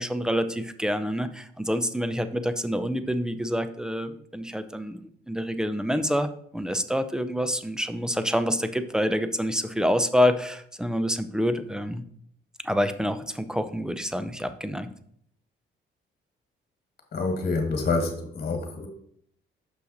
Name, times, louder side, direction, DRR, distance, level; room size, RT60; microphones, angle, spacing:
voice 1, 0.0-12.0 12.6-14.9, equal, 5° right, 11 dB, 0.6 m, -27 dB
voice 2, 17.1-18.9, left 3 dB, 50° left, 5 dB, 1.6 m, -27 dB
6.6 x 5.6 x 4.0 m, 0.65 s
cardioid pair, 90°, 20 cm